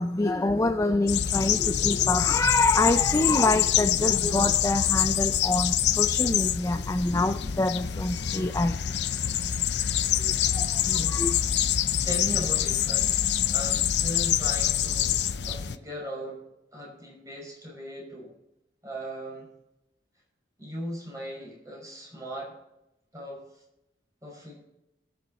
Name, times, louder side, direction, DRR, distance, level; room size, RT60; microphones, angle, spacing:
voice 1, 0.0-8.8 10.2-11.4, left 2 dB, 20° left, 0.5 m, -26 dB
sound 1, 1.1-15.8, left 10 dB, 70° left, 0.6 m, -26 dB
voice 2, 10.8-16.4 16.7-18.3 18.8-19.5 20.6-22.5 23.1-23.4 24.2-24.6, equal, 20° right, 5.7 m, -38 dB
20.5 x 7.1 x 4.2 m
head